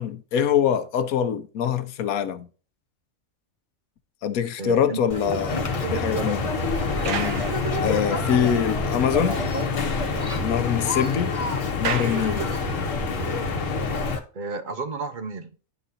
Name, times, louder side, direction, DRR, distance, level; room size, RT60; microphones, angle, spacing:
voice 1, 0.0-2.5 4.2-6.4 7.0-7.5 7.8-9.4 10.4-11.4 11.8-12.5, left 8 dB, 90° left, 1.2 m, -24 dB
voice 2, 4.6-5.0 5.8-6.4 14.3-15.5, right 4 dB, 40° right, 0.8 m, -32 dB
sound 1, 4.9-8.4 8.9-9.0 9.4-9.5 9.8-13.0, right 7 dB, 70° right, 1.2 m, -37 dB
Conversation, 5.1-14.2, left 1 dB, 25° left, 1.0 m, -30 dB
sound 2, 5.5-14.2, left 6 dB, 65° left, 1.3 m, -29 dB
11.0 x 4.1 x 2.6 m
omnidirectional pair, 1.4 m